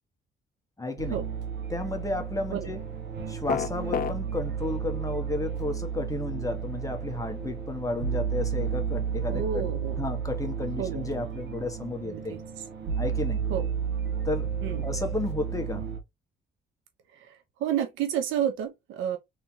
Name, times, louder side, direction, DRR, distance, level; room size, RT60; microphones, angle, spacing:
voice 1, 0.8-1.2 1.7-2.8 3.3-9.7 10.0-12.3 13.0-13.4 14.2-14.5 14.8-15.9, left 2 dB, 15° left, 1.3 m, -32 dB
sound 1, 1.0-16.0, right 7 dB, 60° right, 1.5 m, -32 dB
sound 2, 3.5-4.1, left 9 dB, 45° left, 0.5 m, -28 dB
voice 2, 9.3-10.0 10.8-11.1 12.1-12.4 13.5-13.7 14.6-14.8 17.1-19.2, right 9 dB, 90° right, 1.1 m, -30 dB
3.7 x 3.5 x 2.9 m
cardioid pair, 90°, 20 cm